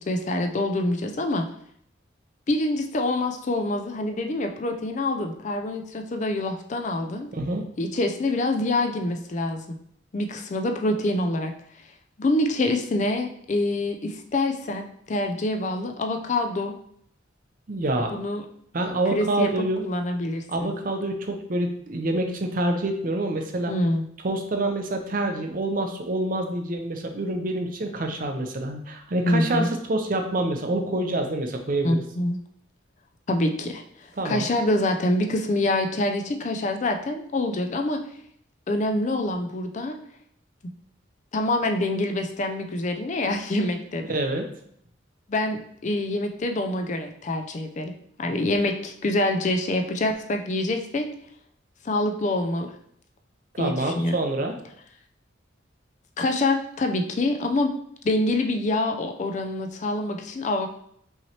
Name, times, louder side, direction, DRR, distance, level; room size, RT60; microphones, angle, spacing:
voice 1, 0.0-1.5 2.5-7.3 7.8-9.8 10.1-11.5 12.2-16.7 18.1-18.4 19.1-20.7 23.7-24.0 29.3-29.7 31.8-32.4 33.3-38.0 38.7-40.0 41.3-44.1 45.3-47.9 48.2-51.1 51.8-52.7 53.6-54.2 56.2-57.7 58.0-60.7, left 2 dB, 40° left, 5 dB, 0.4 m, -26 dB
voice 2, 7.3-7.6 17.7-18.1 18.7-19.9 20.5-23.7 24.2-32.0 34.2-34.5 44.1-44.5 53.5-54.6, right 1 dB, 45° right, 4 dB, 0.6 m, -27 dB
5.6 x 3.1 x 2.8 m, 0.67 s
head